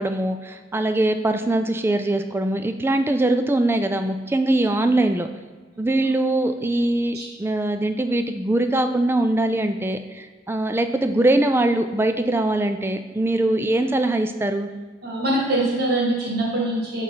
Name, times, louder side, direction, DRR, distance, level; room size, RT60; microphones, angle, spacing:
voice 1, 0.0-5.3 5.8-14.7, right 1 dB, 15° right, 7 dB, 0.3 m, -22 dB
voice 2, 15.0-17.0, right 1 dB, 60° right, -4 dB, 1.9 m, -23 dB
8.1 x 3.2 x 4.0 m, 1.4 s
head